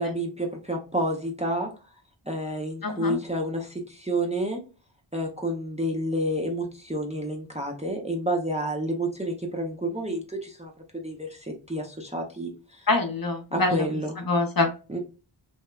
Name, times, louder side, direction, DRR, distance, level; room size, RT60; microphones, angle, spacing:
voice 1, 0.0-1.7 2.3-4.6 5.1-12.5 12.8-12.9 13.5-14.1 14.9-15.0, right 1 dB, 15° right, 2 dB, 0.5 m, -29 dB
voice 2, 2.8-3.2 12.9-13.9 14.2-14.7, left 3 dB, 45° left, 4 dB, 0.7 m, -25 dB
2.9 x 2.1 x 2.2 m, 0.32 s
wide cardioid pair, 55°, 49 cm